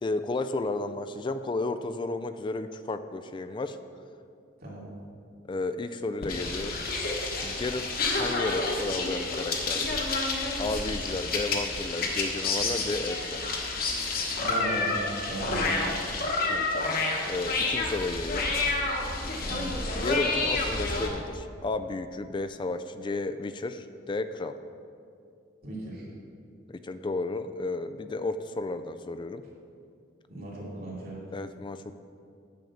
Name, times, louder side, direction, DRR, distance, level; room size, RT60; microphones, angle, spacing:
voice 1, 0.0-3.8 5.5-6.8 7.4-10.1 10.6-13.5 16.5-18.5 20.0-24.6 26.7-29.4 31.3-31.9, left 2 dB, 25° left, 10 dB, 0.3 m, -33 dB
voice 2, 4.6-4.9 14.4-15.9 19.4-19.7 25.6-26.0 30.3-31.2, right 1 dB, 50° right, -5 dB, 2.6 m, -36 dB
sound 1, 6.2-21.1, left 3 dB, 50° left, 1.1 m, -29 dB
9.2 x 5.2 x 7.1 m, 2.4 s
head